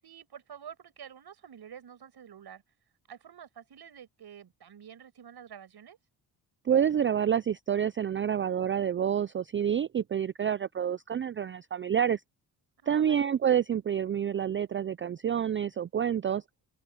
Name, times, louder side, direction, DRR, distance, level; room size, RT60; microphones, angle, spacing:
voice 1, 0.0-2.6 3.1-6.0 12.8-13.3, right 8 dB, 60° right, 7.3 m, -49 dB
voice 2, 6.7-12.2 12.9-16.4, right 9 dB, 30° right, 0.4 m, -28 dB
open air
supercardioid pair, 65°, 43 cm